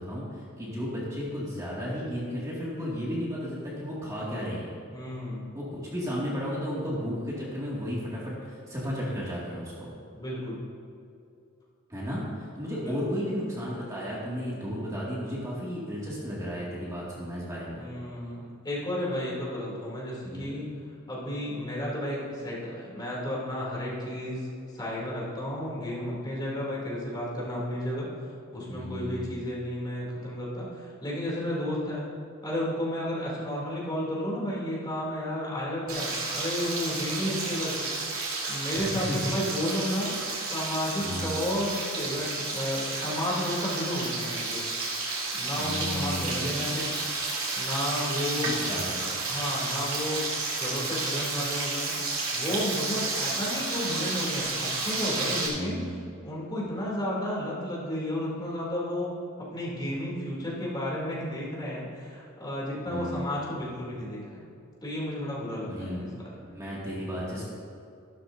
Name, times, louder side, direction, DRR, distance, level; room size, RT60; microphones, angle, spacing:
voice 1, 0.0-4.8 5.5-9.9 11.9-17.9 20.2-20.5 28.7-29.4 38.7-39.2 41.0-41.5 45.6-46.8 48.4-49.1 55.5-56.1 62.9-63.6 65.7-66.2 66.5-67.4, equal, 15° right, -7 dB, 2.2 m, -34 dB
voice 2, 4.9-5.6 10.1-10.6 12.6-13.0 17.8-20.7 21.1-24.5 24.7-28.1 28.5-32.1 32.4-37.9 38.5-40.2 40.5-44.7 45.3-47.0 47.5-48.6 49.3-50.2 50.6-52.0 52.3-55.9 56.2-59.1 59.5-64.5 64.8-66.3, left 1 dB, 20° left, -5 dB, 3.0 m, -32 dB
Frying (food), 35.9-55.5, right 3 dB, 85° right, 2.8 m, -31 dB
14.0 x 12.5 x 2.7 m, 2.5 s
head